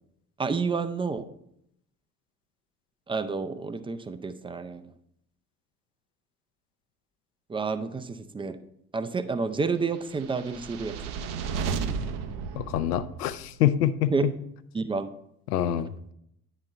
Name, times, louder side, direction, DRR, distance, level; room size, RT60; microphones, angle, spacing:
voice 1, 0.4-1.3 3.1-4.9 7.5-8.6 8.9-11.0 14.1-14.2 14.7-15.1, right 4 dB, 10° right, 11 dB, 0.4 m, -29 dB
sound 1, 10.1-13.5, right 5 dB, 55° right, 0.8 m, -33 dB
voice 2, 12.6-14.3 15.5-16.1, left 11 dB, 80° left, 12 dB, 0.6 m, -26 dB
9.6 x 4.1 x 4.2 m, 0.75 s
figure-of-eight pair, 55°, 46 cm